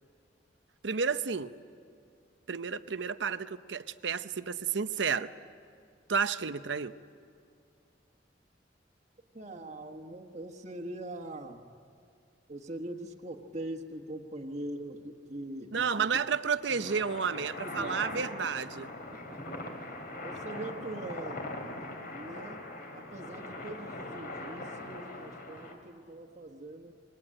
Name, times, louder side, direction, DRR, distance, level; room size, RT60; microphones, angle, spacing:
voice 1, 0.8-1.5 2.5-5.3 6.1-6.9 15.7-18.9, right 6 dB, 75° right, 12 dB, 0.8 m, -31 dB
voice 2, 9.3-11.6 12.5-16.2 16.7-17.0 17.6-18.7 19.1-19.8 20.2-21.5 22.1-22.6 22.9-26.9, right 1 dB, 40° right, 1 dB, 1.4 m, -42 dB
sound 1, 16.6-25.7, left 2 dB, 55° left, 3.5 m, -41 dB
27.5 x 22.5 x 9.0 m, 2.3 s
head